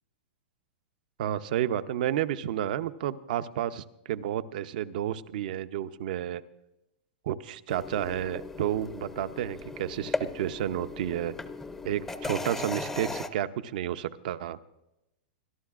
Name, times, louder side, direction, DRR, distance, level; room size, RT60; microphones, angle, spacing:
voice 1, 1.2-6.4 7.3-11.4 11.8-14.6, right 11 dB, 55° right, 13 dB, 0.6 m, -31 dB
sound 1, 7.7-13.3, left 3 dB, 5° left, 0.5 m, -37 dB
25.0 x 12.0 x 2.4 m, 0.91 s
supercardioid pair, 165°, 5 cm